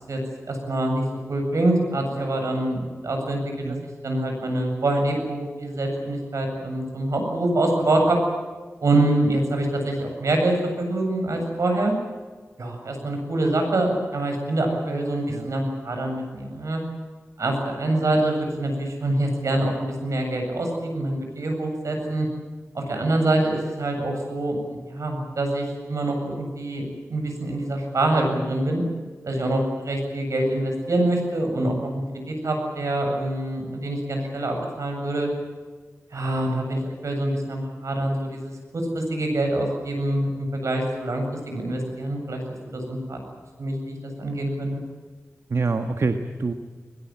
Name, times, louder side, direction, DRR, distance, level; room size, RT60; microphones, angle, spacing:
voice 1, 0.5-3.4 4.0-8.2 8.8-11.9 12.6-16.8 17.4-22.3 22.7-24.6 24.9-26.8 27.1-28.8 29.2-35.3 36.1-42.4 42.7-43.2 43.6-44.8, right 1 dB, 80° right, 3 dB, 7.8 m, -25 dB
voice 2, 45.5-46.5, right 4 dB, 65° right, 7 dB, 1.5 m, -26 dB
22.5 x 21.0 x 9.1 m, 1.4 s
wide cardioid pair, 75°, 5 cm